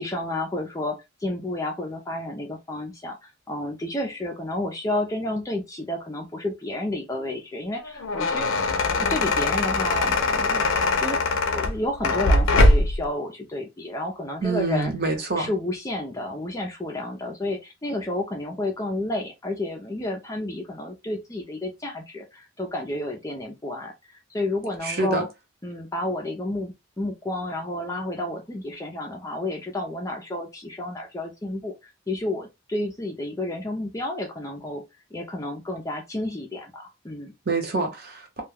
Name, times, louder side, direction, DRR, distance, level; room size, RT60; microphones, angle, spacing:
voice 1, 0.0-11.2 11.5-14.9 15.4-25.3 25.6-34.8 35.1-37.3, left 1 dB, 15° left, 0.4 m, -31 dB
sound 1, 7.8-13.0, left 2 dB, 75° left, 0.6 m, -21 dB
voice 2, 14.4-15.5 24.8-25.3 37.4-38.4, right 3 dB, 45° right, 0.8 m, -26 dB
2.3 x 2.2 x 3.3 m
head